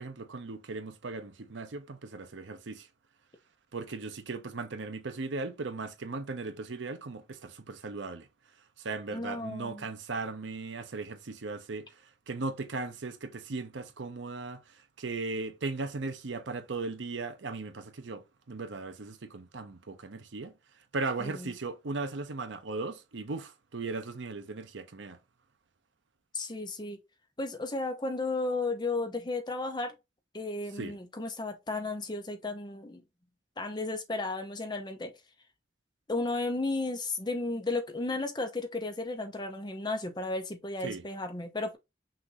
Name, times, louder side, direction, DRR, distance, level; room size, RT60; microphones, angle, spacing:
voice 1, 0.0-2.9 3.7-8.3 8.8-11.9 12.3-14.6 15.0-20.5 20.9-25.2 30.8-31.0 40.8-41.0, right 3 dB, 80° right, 0.7 m, -37 dB
voice 2, 9.1-9.9 21.2-21.5 26.3-27.0 27.4-30.0 30.3-33.0 33.6-35.1 36.1-41.8, left 2 dB, 25° left, 0.8 m, -34 dB
5.8 x 2.6 x 3.0 m
head